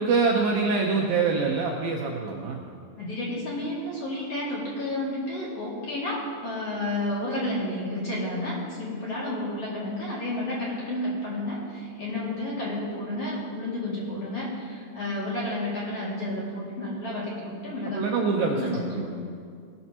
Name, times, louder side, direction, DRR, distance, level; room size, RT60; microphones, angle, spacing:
voice 1, 0.0-2.6 17.9-19.1, right 4 dB, 75° right, -1 dB, 2.2 m, -25 dB
voice 2, 3.0-19.2, left 1 dB, 40° left, -6 dB, 2.9 m, -31 dB
19.5 x 12.5 x 2.9 m, 2.2 s
omnidirectional pair, 5.0 m